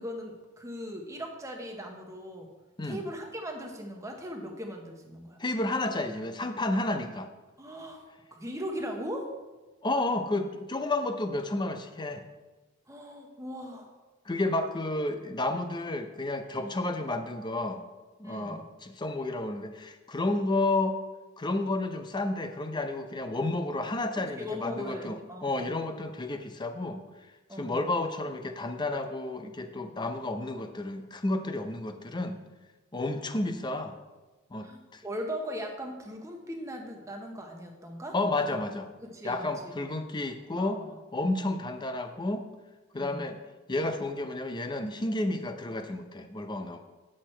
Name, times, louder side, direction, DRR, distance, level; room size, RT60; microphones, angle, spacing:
voice 1, 0.0-2.5 2.8-5.4 7.6-8.0 8.3-9.3 12.9-13.9 16.6-16.8 18.2-18.6 24.3-25.7 27.5-27.8 34.6-38.6 39.0-39.7 40.6-40.9 42.9-43.3, equal, 15° right, 2 dB, 1.0 m, -39 dB
voice 2, 5.4-7.3 9.8-12.2 14.3-17.8 18.2-21.0 21.4-27.0 27.6-32.4 32.9-34.0 34.5-35.0 38.1-38.9 39.2-40.8 41.1-42.5 42.9-43.4 43.7-46.8, left 2 dB, 20° left, 7 dB, 0.6 m, -31 dB
8.2 x 6.4 x 4.4 m, 1.2 s
head